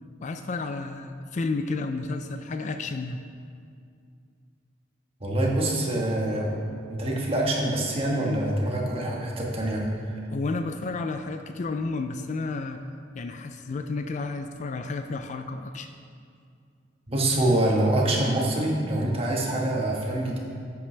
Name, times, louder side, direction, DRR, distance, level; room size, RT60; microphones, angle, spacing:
voice 1, 0.2-3.2 10.3-12.8 13.1-15.9, left 3 dB, 40° left, 8 dB, 0.3 m, -31 dB
voice 2, 5.2-6.6 6.9-9.8 17.1-20.4, right 1 dB, 30° right, -2 dB, 1.5 m, -25 dB
11.0 x 8.5 x 3.3 m, 2.3 s
head